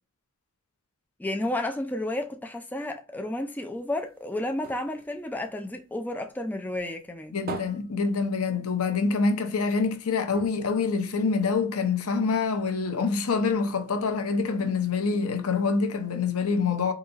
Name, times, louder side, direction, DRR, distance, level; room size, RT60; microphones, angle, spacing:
voice 1, 1.2-7.3, left 1 dB, 10° left, 0.3 m, -32 dB
sound 1, 3.7-6.4 6.7-9.0 9.3-9.4 9.7-9.9 10.3-11.8 12.5-12.6, right 4 dB, 45° right, 0.6 m, -43 dB
voice 2, 7.3-16.9, left 4 dB, 80° left, 0.7 m, -26 dB
3.9 x 2.8 x 2.4 m
head